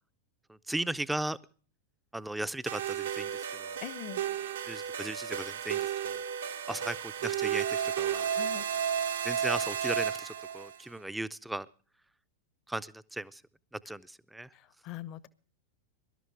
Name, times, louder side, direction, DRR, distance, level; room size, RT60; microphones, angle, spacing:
voice 1, 0.5-1.4 2.1-3.8 4.6-6.2 6.7-8.3 9.2-11.7 12.7-13.4 13.7-14.5, right 1 dB, 5° right, 15 dB, 0.6 m, -37 dB
sound 1, 2.7-10.8, right 9 dB, 65° right, 1.1 m, -33 dB
voice 2, 3.8-4.2 8.3-8.6 14.8-15.3, left 12 dB, 40° left, 18 dB, 0.9 m, -41 dB
23.5 x 12.5 x 3.4 m, 0.41 s
figure-of-eight pair, 90°, 0 cm